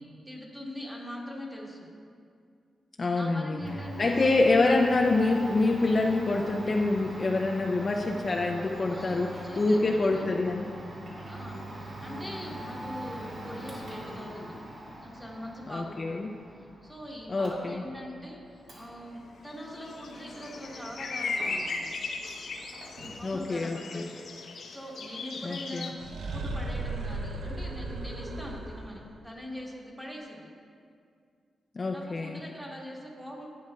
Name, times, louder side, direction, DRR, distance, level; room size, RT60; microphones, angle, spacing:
voice 1, 0.3-1.9 3.1-4.1 8.9-10.3 11.3-14.6 15.0-16.2 16.8-21.9 23.2-24.2 24.6-25.9 26.3-30.5 31.9-33.5, equal, 5° right, -2 dB, 1.3 m, -42 dB
voice 2, 3.0-3.6 4.0-10.7 15.7-16.3 17.3-17.8 23.2-24.1 25.4-25.9 31.7-32.4, left 2 dB, 35° left, 1 dB, 0.4 m, -26 dB
Domestic sounds home sounds, 3.6-21.9 22.2-23.3, right 1 dB, 65° right, 2.0 m, -43 dB
sound 1, 19.4-25.9, left 4 dB, 70° left, 0.8 m, -37 dB
sound 2, 26.0-29.0, right 2 dB, 80° right, 0.6 m, -35 dB
11.5 x 9.3 x 2.3 m, 2.3 s
wide cardioid pair, 135°, 0 cm